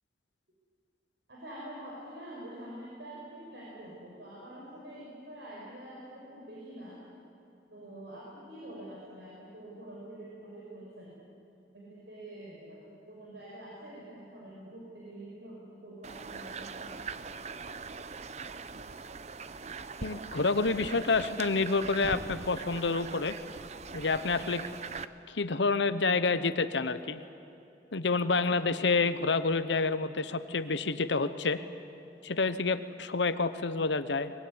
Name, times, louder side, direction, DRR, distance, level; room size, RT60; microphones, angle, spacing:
voice 1, 1.3-7.0 7.7-11.2 11.7-17.1 28.3-28.6, right 1 dB, 70° right, -5 dB, 5.7 m, -46 dB
sound 1, 16.0-25.1, right 4 dB, 40° right, 0.7 m, -41 dB
voice 2, 20.0-23.3 23.9-24.6 25.3-27.2 27.9-31.6 32.2-34.3, left 4 dB, 80° left, 12 dB, 0.9 m, -28 dB
23.5 x 21.5 x 9.7 m, 2.9 s
head